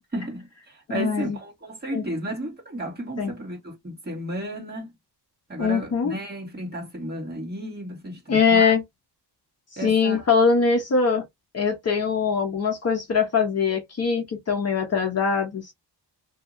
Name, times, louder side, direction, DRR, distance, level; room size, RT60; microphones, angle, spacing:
voice 1, 0.1-4.9 5.5-8.7 9.8-10.3, right 1 dB, 20° right, 1.6 m, -33 dB
voice 2, 0.9-1.4 1.9-2.0 3.2-3.3 5.6-6.2 8.3-8.8 9.7-11.2 11.5-15.7, left 5 dB, 35° left, 0.7 m, -22 dB
2.8 x 2.6 x 2.5 m
wide cardioid pair, 165°, 42 cm